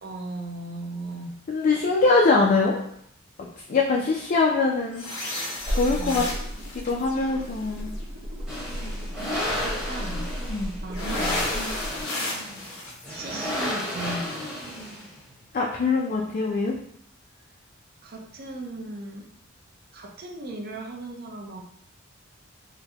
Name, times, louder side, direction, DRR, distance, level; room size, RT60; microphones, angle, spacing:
voice 1, 0.0-1.4 5.9-6.3 8.7-8.9 9.6-10.2 10.8-11.4 13.1-14.4 18.0-19.3 19.9-21.6, right 2 dB, 50° right, 1 dB, 0.5 m, -36 dB
voice 2, 1.5-2.8 3.4-5.0 5.3-6.2 6.8-7.9 10.5-10.7 11.6-11.8 15.5-16.7, left 3 dB, 40° left, -1 dB, 0.3 m, -23 dB
sound 1, 4.9-8.0 10.9-14.0, left 2 dB, 90° left, 0.8 m, -35 dB
sound 2, 5.6-12.1, equal, 75° right, 1.0 m, -34 dB
Ford GT Engine, 8.5-15.2, left 1 dB, 5° right, 0.9 m, -32 dB
3.8 x 2.1 x 2.8 m, 0.70 s
head